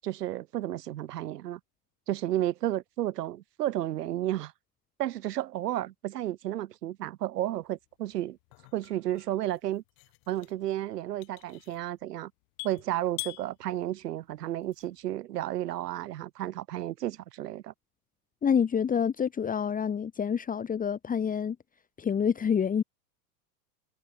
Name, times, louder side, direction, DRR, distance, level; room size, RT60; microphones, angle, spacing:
voice 1, 0.0-1.6 2.1-4.5 5.0-8.4 8.7-9.8 10.3-12.3 12.6-17.7, right 13 dB, 80° right, 7.6 m, -32 dB
sound 1, 7.6-15.1, left 40 dB or more, 50° left, 3.7 m, -47 dB
voice 2, 18.4-21.6 22.0-22.8, left 7 dB, 15° left, 2.1 m, -27 dB
supercardioid pair, 135°, 47 cm